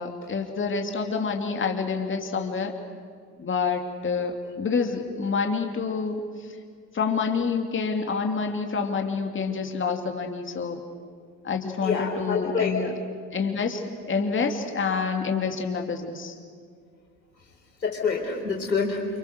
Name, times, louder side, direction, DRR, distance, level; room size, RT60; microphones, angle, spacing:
voice 1, 0.0-2.7 3.4-6.6 6.9-10.8 11.4-12.9 13.3-16.4, left 5 dB, 25° left, 4 dB, 2.6 m, -28 dB
voice 2, 11.8-12.8 17.8-19.1, left 5 dB, 90° left, 0 dB, 4.5 m, -26 dB
28.5 x 26.5 x 6.6 m, 2.1 s
figure-of-eight pair, 65°, 49 cm